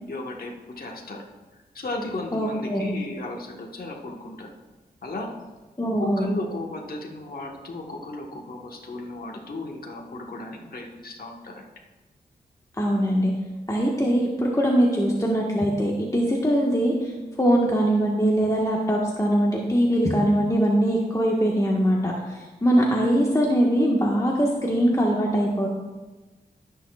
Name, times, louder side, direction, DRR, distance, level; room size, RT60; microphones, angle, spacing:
voice 1, 0.1-1.2 1.7-4.5 5.0-5.3 6.0-11.6, left 2 dB, 60° left, 0 dB, 1.4 m, -35 dB
voice 2, 2.3-2.9 5.8-6.3 12.8-13.3 13.7-17.1 17.4-25.7, equal, 20° left, -2 dB, 1.5 m, -22 dB
17.0 x 6.8 x 2.4 m, 1.2 s
cardioid pair, 45°, 18 cm